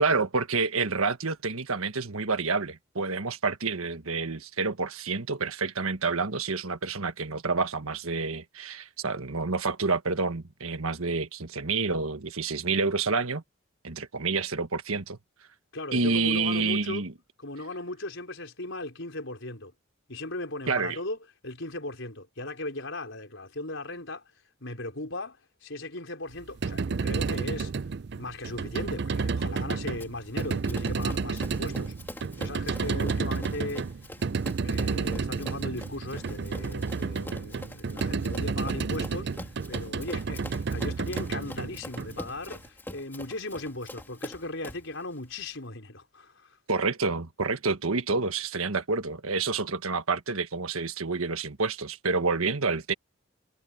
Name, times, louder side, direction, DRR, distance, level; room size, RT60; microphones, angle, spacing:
voice 1, 0.0-13.4 13.8-15.2 15.9-17.1 20.7-21.0 46.7-52.9, right 4 dB, 85° right, 1.5 m, -28 dB
voice 2, 15.7-17.0 17.4-19.7 20.1-21.2 21.4-24.3 24.6-27.7 28.2-34.1 34.6-46.6, left 2 dB, 65° left, 5.0 m, -37 dB
sound 1, 26.4-42.6, right 4 dB, 50° right, 0.4 m, -31 dB
Run, 30.0-44.9, left 1 dB, 10° left, 2.8 m, -45 dB
head